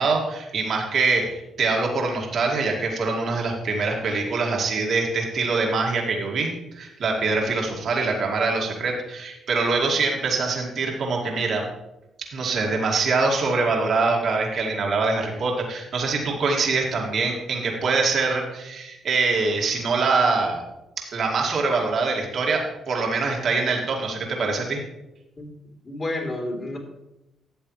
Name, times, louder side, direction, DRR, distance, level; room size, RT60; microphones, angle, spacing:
voice 1, 0.0-11.6 12.3-20.6 21.1-24.8, right 4 dB, 60° right, 0 dB, 2.3 m, -24 dB
voice 2, 25.8-26.8, left 1 dB, 35° left, 1 dB, 3.1 m, -30 dB
12.5 x 7.9 x 3.2 m, 0.91 s
supercardioid pair, 65°, 0 cm